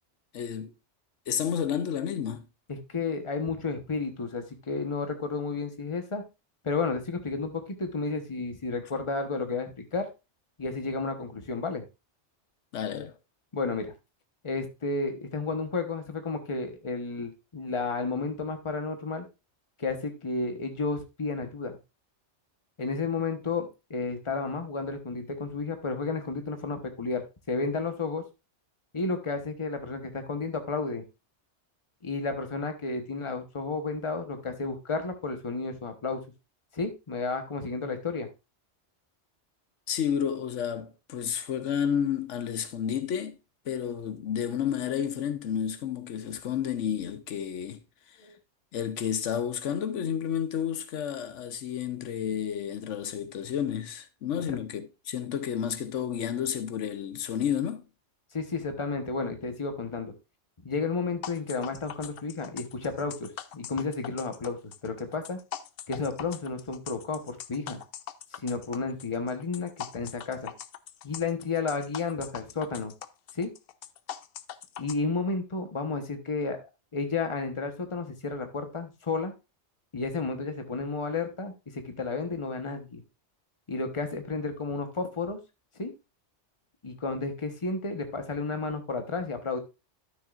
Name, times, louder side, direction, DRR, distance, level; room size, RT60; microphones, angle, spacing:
voice 1, 0.3-0.7 1.3-2.5 12.7-13.2 39.9-43.4 43.7-48.2 48.7-57.8, left 8 dB, 85° left, 1.1 m, -31 dB
voice 2, 2.7-6.2 6.6-10.1 10.6-11.8 13.5-13.9 14.4-19.2 19.8-21.8 22.8-28.2 28.9-31.0 32.0-36.2 36.7-38.3 48.2-48.3 58.3-60.1 60.6-65.4 65.9-67.8 68.3-70.5 71.0-72.9 73.3-73.5 74.8-76.6 76.9-79.3 79.9-83.0 83.7-85.4 85.8-85.9 86.8-89.6, left 4 dB, 25° left, 1.1 m, -32 dB
sound 1, 61.2-74.9, left 10 dB, 60° left, 0.7 m, -41 dB
12.0 x 6.5 x 2.4 m
omnidirectional pair, 1.2 m